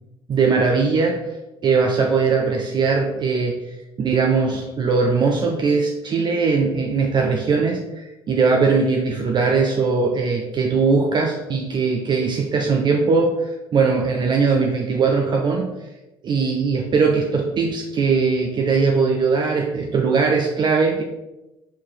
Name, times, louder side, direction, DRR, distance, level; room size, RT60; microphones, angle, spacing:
voice 1, 0.3-1.3 1.6-3.6 4.0-15.7 16.2-21.0, right 4 dB, 40° right, 2 dB, 0.6 m, -20 dB
4.7 x 2.9 x 3.8 m, 1.0 s
hypercardioid pair, 65°, 12 cm